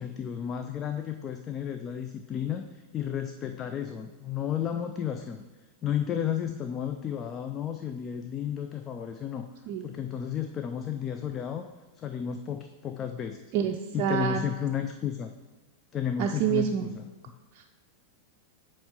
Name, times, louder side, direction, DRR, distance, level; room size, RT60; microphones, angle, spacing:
voice 1, 0.0-5.4 5.8-9.5 9.8-11.7 12.0-13.5 13.9-15.3 15.9-17.1, left 9 dB, 30° left, 7 dB, 0.4 m, -33 dB
voice 2, 13.5-14.4 16.2-16.9, right 9 dB, 40° right, 1 dB, 0.5 m, -27 dB
8.5 x 3.2 x 5.9 m, 1.3 s
figure-of-eight pair, 90°, 0 cm